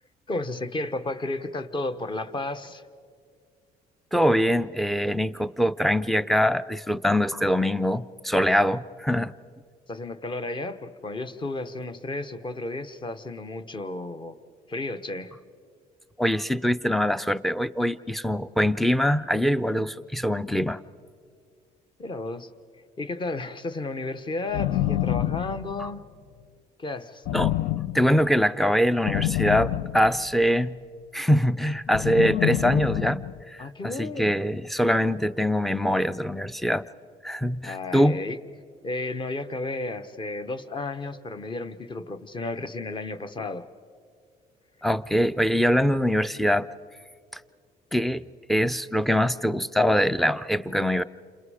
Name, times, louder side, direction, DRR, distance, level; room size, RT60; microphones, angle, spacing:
voice 1, 0.3-2.8 9.9-14.4 14.7-15.3 22.0-22.5 23.0-26.0 26.8-27.2 33.6-34.5 37.6-38.4 38.8-43.7, left 2 dB, 30° left, 10 dB, 1.1 m, -33 dB
voice 2, 4.1-9.3 16.2-20.8 25.8-25.9 27.3-27.5 27.9-30.8 31.1-36.8 37.2-38.2 44.8-46.7 47.3-47.4 47.9-51.0, equal, ahead, 12 dB, 0.5 m, -23 dB
sound 1, 24.5-26.0 27.3-28.3 29.1-30.6 31.9-33.4, left 13 dB, 75° left, 0.6 m, -27 dB
29.5 x 27.0 x 5.0 m, 2.2 s
cardioid pair, 110°, 17 cm